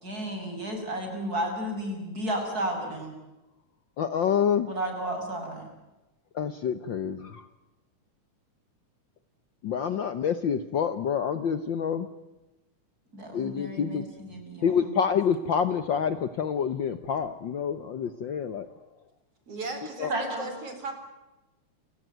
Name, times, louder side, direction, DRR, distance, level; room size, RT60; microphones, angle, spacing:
voice 1, 0.0-3.1 4.7-5.7 13.1-15.0 20.1-20.5, right 1 dB, 25° right, 4 dB, 6.9 m, -33 dB
voice 2, 4.0-4.7 6.3-7.5 9.6-12.1 13.3-14.0 14.6-18.7 20.0-20.1, left 7 dB, 85° left, 12 dB, 1.0 m, -27 dB
voice 3, 19.5-20.9, right 3 dB, 50° right, 7 dB, 5.2 m, -36 dB
29.0 x 17.5 x 9.3 m, 1.0 s
omnidirectional pair, 3.5 m